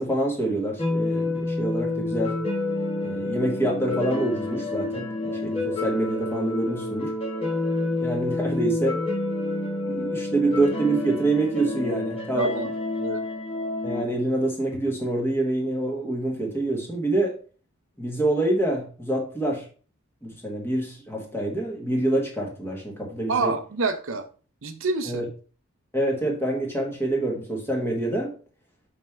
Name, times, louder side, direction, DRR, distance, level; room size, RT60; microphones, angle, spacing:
voice 1, 0.0-2.4 3.0-7.1 8.0-9.0 9.8-12.6 13.8-17.3 18.0-19.7 20.2-23.5 25.1-25.3 25.9-28.3, right 2 dB, 10° left, 1.4 m, -26 dB
sound 1, 0.8-14.0, left 2 dB, 25° left, 1.1 m, -28 dB
voice 2, 12.3-12.7 13.0-13.2 23.3-24.3 24.6-25.2, right 3 dB, 60° right, 0.6 m, -27 dB
6.3 x 3.6 x 4.4 m
head